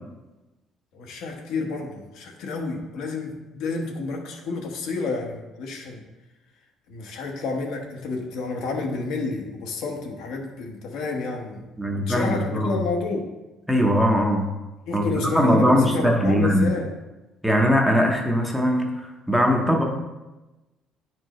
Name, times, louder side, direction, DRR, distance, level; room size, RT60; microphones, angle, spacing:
voice 1, 0.9-6.0 6.9-11.6 11.9-13.3 14.9-16.9, left 3 dB, 70° left, 2 dB, 1.0 m, -30 dB
voice 2, 11.8-12.8 13.7-14.5 14.9-15.0 15.3-16.7 17.4-19.8, equal, ahead, 0 dB, 0.7 m, -20 dB
9.9 x 4.6 x 3.1 m, 1.1 s
cardioid pair, 175°, 0 cm